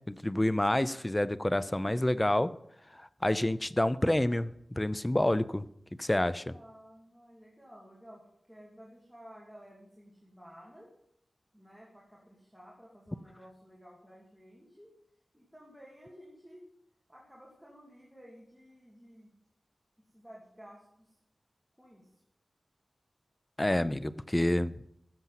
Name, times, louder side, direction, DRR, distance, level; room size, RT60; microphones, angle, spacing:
voice 1, 0.1-2.5 2.9-4.5 4.8-5.6 6.0-6.5 23.6-24.8, left 1 dB, 15° left, 15 dB, 0.5 m, -28 dB
voice 2, 6.5-10.9 11.5-14.9 15.3-16.6 17.1-19.4 20.1-21.2 21.8-22.1, equal, ahead, -4 dB, 2.7 m, -54 dB
13.5 x 7.4 x 5.8 m, 0.74 s
wide cardioid pair, 90°, 0 cm